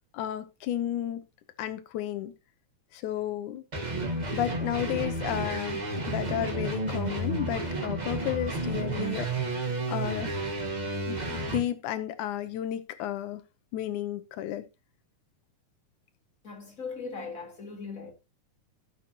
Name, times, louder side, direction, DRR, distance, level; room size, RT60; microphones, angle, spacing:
voice 1, 0.1-1.2 1.6-2.3 2.9-3.6 4.3-9.6 9.9-10.4 11.1-13.4 13.7-14.6, left 12 dB, 85° left, 2.4 m, -32 dB
sound 1, 3.7-11.7, right 2 dB, 40° right, 0.6 m, -31 dB
voice 2, 16.4-18.1, left 4 dB, 25° left, 4.0 m, -39 dB
15.5 x 7.7 x 2.9 m
omnidirectional pair, 3.4 m